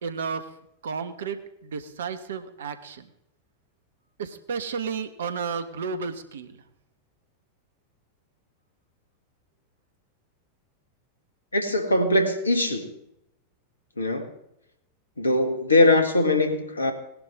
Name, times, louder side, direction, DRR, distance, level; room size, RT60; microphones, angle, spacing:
voice 1, 0.0-0.5 0.8-3.1 4.2-6.6, right 5 dB, 65° right, 11 dB, 1.2 m, -32 dB
voice 2, 11.5-12.9 14.0-14.3 15.2-16.9, left 2 dB, 80° left, 6 dB, 1.8 m, -21 dB
18.0 x 11.0 x 3.7 m, 0.81 s
figure-of-eight pair, 90°, 0 cm